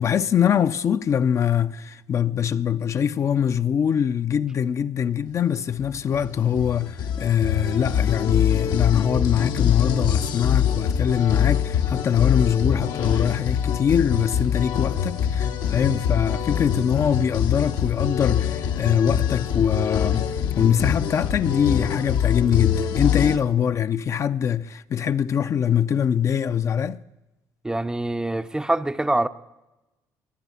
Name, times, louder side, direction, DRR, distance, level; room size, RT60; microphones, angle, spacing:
voice 1, 0.0-27.0, left 8 dB, 40° left, 0.5 m, -23 dB
sound 1, 5.7-23.4, left 9 dB, 70° left, 1.0 m, -24 dB
voice 2, 27.6-29.3, right 2 dB, 10° right, 0.5 m, -24 dB
23.0 x 8.2 x 7.0 m
cardioid pair, 110°, 7 cm